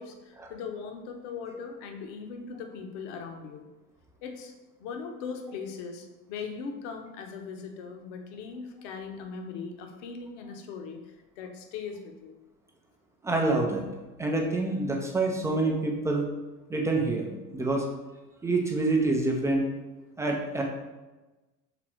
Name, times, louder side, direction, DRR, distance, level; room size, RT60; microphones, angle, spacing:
voice 1, 0.0-3.6 4.2-4.5 4.8-12.4, left 5 dB, 45° left, 4 dB, 1.0 m, -39 dB
voice 2, 13.2-13.8 14.2-16.3 16.7-17.9 18.4-19.7 20.2-20.6, right 2 dB, 5° right, 0 dB, 0.4 m, -27 dB
6.1 x 3.8 x 4.4 m, 1.1 s
figure-of-eight pair, 75°, 49 cm